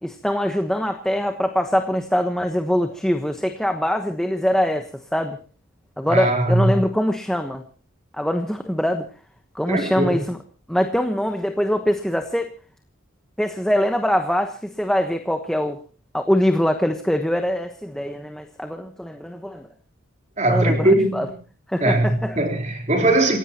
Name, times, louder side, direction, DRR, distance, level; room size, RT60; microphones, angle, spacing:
voice 1, 0.0-5.4 6.0-7.6 8.1-9.1 9.5-10.4 10.7-12.5 13.4-15.8 16.1-19.7 20.5-21.3 21.7-22.4, equal, 5° left, 5 dB, 1.1 m, -23 dB
voice 2, 6.1-6.7 9.7-10.2 20.4-21.3 21.8-23.4, right 1 dB, 35° right, 3 dB, 4.0 m, -20 dB
28.5 x 16.5 x 3.0 m, 0.37 s
head